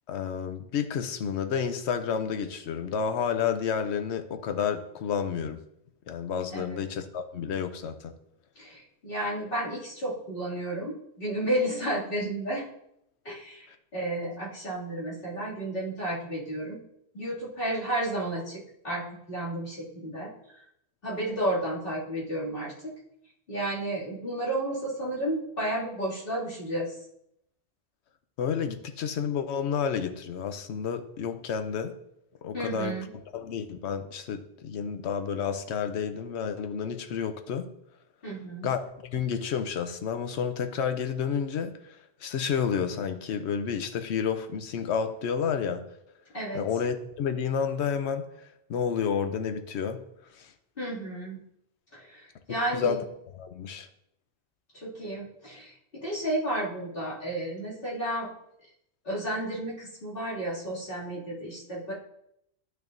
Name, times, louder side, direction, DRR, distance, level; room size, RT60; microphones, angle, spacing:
voice 1, 0.1-5.6 6.1-8.1 28.4-32.0 32.4-33.0 33.3-37.7 38.6-45.9 46.5-48.3 48.7-50.0 50.3-50.5 52.7-53.0 53.3-53.9, left 7 dB, 85° left, 9 dB, 1.0 m, -30 dB
voice 2, 8.6-12.6 13.2-13.7 13.9-16.8 17.1-20.6 21.0-22.9 23.5-26.9 32.5-33.1 38.2-38.7 46.3-46.6 50.8-51.4 51.9-53.0 54.7-58.3 59.0-61.9, right 1 dB, 55° left, -8 dB, 2.7 m, -32 dB
10.5 x 6.5 x 2.6 m, 0.77 s
omnidirectional pair, 1.1 m